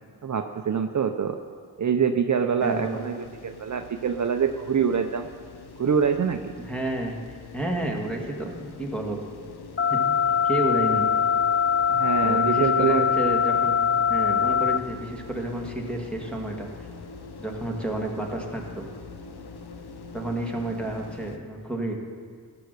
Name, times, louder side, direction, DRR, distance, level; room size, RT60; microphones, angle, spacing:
voice 1, 0.2-1.4 1.8-5.3 5.8-6.5 11.9-13.1 20.8-20.9, right 7 dB, 50° right, 6 dB, 0.6 m, -25 dB
sound 1, 2.6-21.4, left 4 dB, 80° left, 0.9 m, -43 dB
voice 2, 2.6-3.0 6.6-9.2 9.9-10.1 10.4-11.1 12.2-13.8 14.1-16.7 17.4-18.9 20.1-21.9, right 1 dB, 5° left, 0 dB, 1.8 m, -30 dB
sound 2, 9.8-14.8, left 7 dB, 35° left, 0.4 m, -22 dB
16.5 x 7.8 x 6.7 m, 2.1 s
wide cardioid pair, 115°, 39 cm